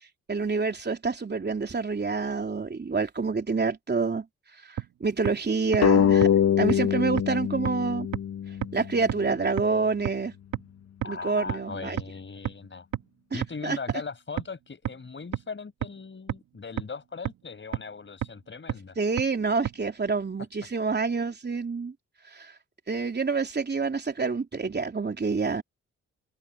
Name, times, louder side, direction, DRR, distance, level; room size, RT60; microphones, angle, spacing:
voice 1, 0.3-4.3 4.6-6.3 6.6-8.1 8.7-10.3 11.0-12.0 13.3-13.8 19.0-21.9 22.3-22.5 22.9-25.6, right 4 dB, 35° right, 3.4 m, -27 dB
sound 1, 4.8-4.9 5.3-5.4 5.7-5.8 6.2-6.3 6.7-6.8 7.2-7.3 7.7-7.8 8.1-8.2 8.6-8.7 9.1-9.2 9.6-9.7 10.1-10.2 10.5-10.6 11.0-11.1 11.5-11.6 12.0-12.1 12.5-12.6 12.9-13.0 13.4-13.5 13.9-14.0 14.4-14.5 14.9-15.0 15.3-15.4 15.8-15.9 16.3-16.4 16.8-16.9 17.3-17.4 17.7-17.8 18.2-18.3 18.7-18.8 19.2-19.3 19.7-19.8, right 10 dB, 70° right, 1.9 m, -28 dB
sound 2, 5.8-9.0, left 8 dB, 55° left, 1.1 m, -23 dB
voice 2, 11.0-12.9 13.3-19.0, left 4 dB, 40° left, 5.7 m, -39 dB
supercardioid pair, 55°, 30 cm